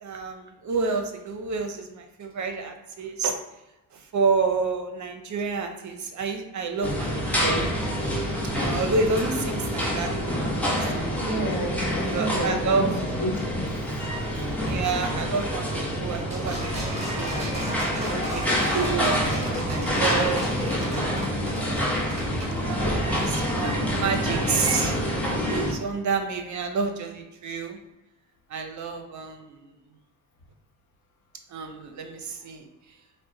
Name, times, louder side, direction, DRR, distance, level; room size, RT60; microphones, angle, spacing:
voice 1, 0.0-3.4 3.9-7.1 7.4-7.7 8.6-11.5 12.0-13.0 14.6-15.7 16.0-17.5 17.9-19.1 19.6-20.5 20.9-21.3 22.6-25.0 25.5-27.8 28.5-29.6 31.5-32.7, right 4 dB, 55° right, 5 dB, 0.7 m, -29 dB
sound 1, 6.8-25.7, equal, 5° left, 1.0 m, -27 dB
voice 2, 11.1-13.7 14.3-14.4, equal, 85° left, 0 dB, 1.0 m, -31 dB
sound 2, 16.3-22.5, right 1 dB, 20° right, 1.4 m, -36 dB
3.8 x 2.2 x 3.9 m, 0.98 s
cardioid pair, 70°, 34 cm